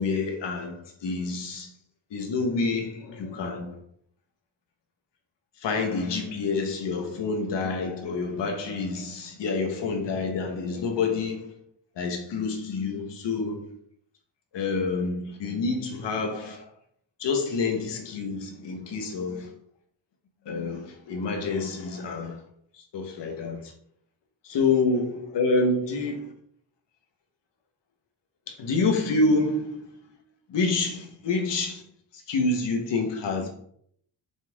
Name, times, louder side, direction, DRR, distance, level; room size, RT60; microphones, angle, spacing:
voice 1, 0.0-1.7 2.1-3.8 5.6-11.5 12.0-13.7 14.5-16.6 17.2-19.5 20.5-22.4 22.7-23.7 24.4-26.3 28.5-30.2 30.5-31.8 32.1-33.5, left 3 dB, 85° left, 1.9 m, -28 dB
7.0 x 5.9 x 3.9 m
wide cardioid pair, 170°, 42 cm